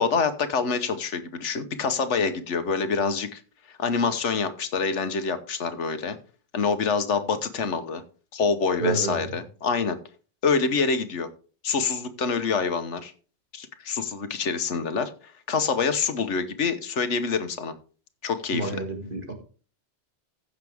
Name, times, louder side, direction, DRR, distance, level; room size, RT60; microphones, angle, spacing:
voice 1, 0.0-3.4 3.8-6.2 6.5-8.0 8.3-10.0 10.4-11.3 11.6-13.1 13.5-15.1 15.5-17.7 18.2-18.7, left 5 dB, 85° left, 10 dB, 1.4 m, -26 dB
voice 2, 8.8-9.3 18.5-19.3, right 3 dB, 45° right, 4 dB, 2.2 m, -29 dB
15.5 x 6.6 x 3.5 m, 0.39 s
omnidirectional pair, 1.2 m